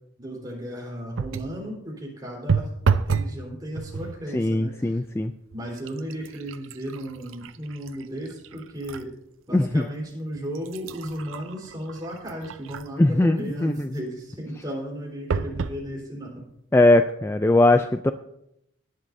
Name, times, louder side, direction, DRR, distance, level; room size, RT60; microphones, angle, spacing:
voice 1, 0.2-2.7 3.0-5.0 5.5-9.1 9.5-16.3, equal, 20° right, -2 dB, 4.0 m, -35 dB
sound 1, 1.1-1.6 2.5-3.4 3.7-4.2 5.0-5.1 5.5-9.1 9.6-9.7 10.4-13.1 15.3-15.8 16.5-16.6 16.8-16.9, right 5 dB, 90° right, 0.5 m, -30 dB
voice 2, 4.3-5.3 9.5-9.8 13.0-13.9 16.7-18.1, left 2 dB, 15° left, 8 dB, 0.3 m, -20 dB
18.5 x 11.0 x 2.7 m, 0.79 s
head